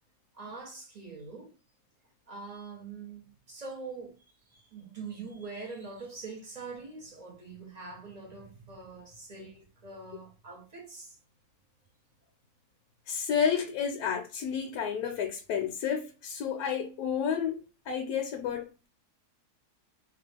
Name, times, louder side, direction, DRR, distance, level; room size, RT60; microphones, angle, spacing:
voice 1, 0.3-1.5 2.3-4.2 4.5-11.2, right 4 dB, 60° right, 0.4 m, -44 dB
voice 2, 13.1-18.9, left 7 dB, 75° left, 1.0 m, -31 dB
2.9 x 2.3 x 3.3 m
omnidirectional pair, 1.7 m